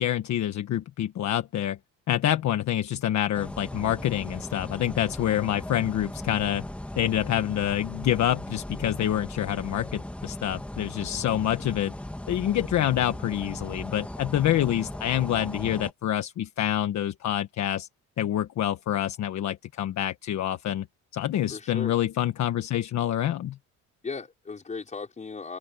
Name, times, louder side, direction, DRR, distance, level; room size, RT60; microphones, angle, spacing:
voice 1, 0.0-1.8 2.1-6.6 7.0-11.9 12.3-17.9 18.2-20.8 21.1-23.6, left 11 dB, 55° left, 1.3 m, -27 dB
sound 1, 3.3-15.9, left 1 dB, 5° left, 1.7 m, -37 dB
voice 2, 21.5-21.9 24.0-25.6, left 4 dB, 20° left, 5.0 m, -36 dB
open air
cardioid pair, 160°, 33 cm